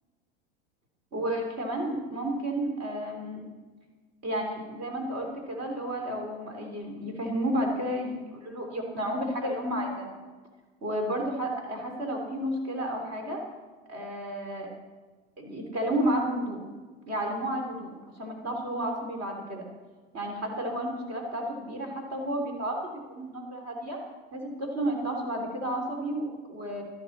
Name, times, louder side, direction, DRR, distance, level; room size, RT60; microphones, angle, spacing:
voice 1, 1.1-3.4 4.2-10.2 10.8-13.4 13.9-14.7 15.4-16.6 17.1-17.9 18.2-19.6 20.1-24.0 24.3-26.8, right 1 dB, 45° right, 1 dB, 3.1 m, -32 dB
18.0 x 13.0 x 4.2 m, 1.4 s
supercardioid pair, 165°, 32 cm